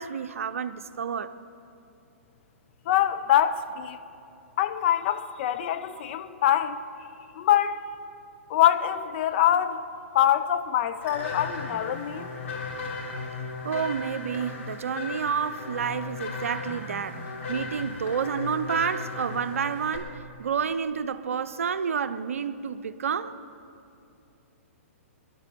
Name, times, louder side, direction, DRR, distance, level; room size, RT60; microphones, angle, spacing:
voice 1, 0.0-1.3 13.6-17.2 17.5-20.1 20.4-23.4, right 7 dB, 70° right, 0.7 m, -29 dB
voice 2, 2.9-4.0 4.6-6.8 7.3-7.8 8.5-9.8 10.1-12.3, left 11 dB, 50° left, 0.7 m, -24 dB
sound 1, 11.0-20.0, left 3 dB, 65° left, 3.1 m, -36 dB
21.5 x 11.5 x 4.6 m
hypercardioid pair, 120°, 8 cm